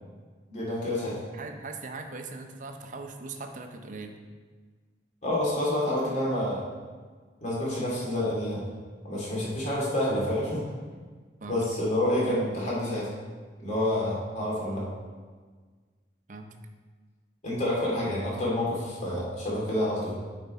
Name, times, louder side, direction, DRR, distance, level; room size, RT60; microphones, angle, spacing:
voice 1, 0.5-1.2 5.2-6.6 7.4-8.6 9.0-10.6 11.5-13.1 13.6-14.9 17.4-20.2, left 1 dB, 45° left, -5 dB, 2.4 m, -28 dB
voice 2, 1.3-4.2 9.3-9.6 11.4-11.6 16.3-16.6, right 3 dB, 50° right, 5 dB, 0.7 m, -40 dB
9.0 x 5.1 x 4.2 m, 1.5 s
head